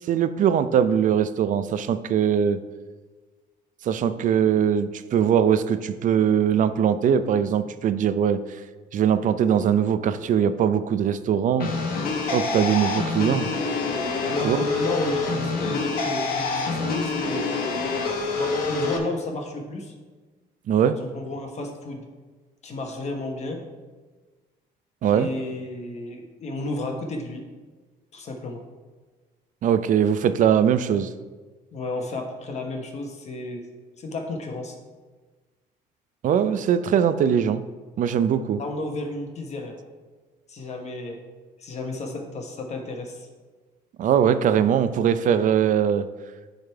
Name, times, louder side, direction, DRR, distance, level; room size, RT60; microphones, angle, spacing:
voice 1, 0.1-2.6 3.8-8.4 8.9-11.7 12.3-13.5 14.4-14.6 20.7-21.0 25.0-25.3 29.6-31.1 36.2-37.6 38.0-38.6 44.0-46.1, right 8 dB, 50° right, 12 dB, 0.5 m, -21 dB
sound 1, 11.6-19.0, left 4 dB, 60° left, 1.3 m, -26 dB
voice 2, 14.2-17.5 18.4-19.9 20.8-22.0 22.6-23.6 25.1-27.4 28.1-28.6 31.7-33.7 34.0-34.8 38.6-39.8 40.5-41.2 41.6-43.3, left 2 dB, 40° left, 2 dB, 1.2 m, -32 dB
10.0 x 3.6 x 4.5 m, 1.3 s
cardioid pair, 110°, 17 cm